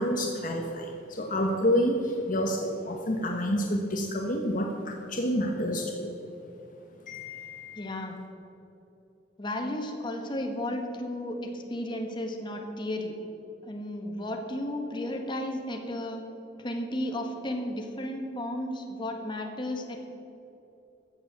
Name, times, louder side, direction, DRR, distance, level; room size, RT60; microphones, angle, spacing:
voice 1, 0.0-6.1 7.1-8.0, equal, 50° left, 2 dB, 1.2 m, -29 dB
voice 2, 7.8-8.2 9.4-13.1 13.6-16.2 16.6-20.0, left 1 dB, 25° left, 2 dB, 1.6 m, -33 dB
14.5 x 7.3 x 7.4 m, 3.0 s
head